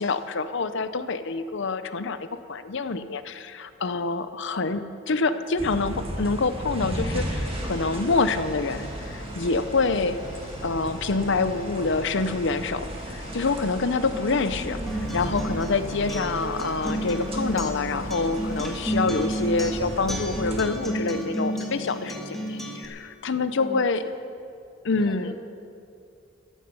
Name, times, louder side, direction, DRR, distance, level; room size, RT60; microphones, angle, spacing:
voice 1, 0.0-10.2 10.6-14.8 15.1-24.0 24.8-25.3, left 3 dB, 65° left, 12 dB, 0.7 m, -26 dB
sound 1, 5.6-20.6, equal, 30° right, 1.7 m, -35 dB
sound 2, 7.4-18.7, left 1 dB, 40° left, 1.7 m, -47 dB
Acoustic guitar, 14.9-22.8, right 1 dB, ahead, 1.7 m, -31 dB
voice 2, 23.6-24.0 25.0-25.3, left 1 dB, 25° left, 3 dB, 1.3 m, -38 dB
14.5 x 13.5 x 5.5 m, 2.5 s
head